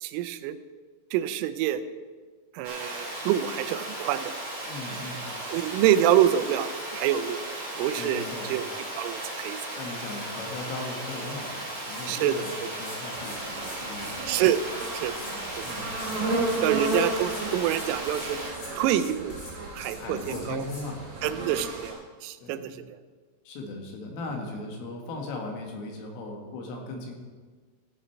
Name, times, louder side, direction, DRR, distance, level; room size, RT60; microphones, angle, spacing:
voice 1, 0.0-0.6 1.1-1.8 2.5-4.3 5.5-7.4 7.8-9.6 12.1-12.5 14.3-14.6 14.9-15.2 15.6-15.7 16.6-18.4 18.8-19.4 19.7-20.6 21.2-22.8, right 11 dB, 90° right, 12 dB, 3.2 m, -26 dB
Water, 2.6-18.5, right 1 dB, 15° right, 1.9 m, -36 dB
voice 2, 4.6-5.3 8.0-8.5 9.7-14.2 15.6-16.6 20.0-21.6 22.4-22.8 23.5-27.1, left 2 dB, 85° left, 1 dB, 4.2 m, -38 dB
sound 1, 11.8-20.9, left 2 dB, 40° left, 3.6 m, -46 dB
sound 2, 13.2-21.9, right 2 dB, 50° right, 4.1 m, -33 dB
14.5 x 9.0 x 4.5 m, 1.5 s
omnidirectional pair, 5.7 m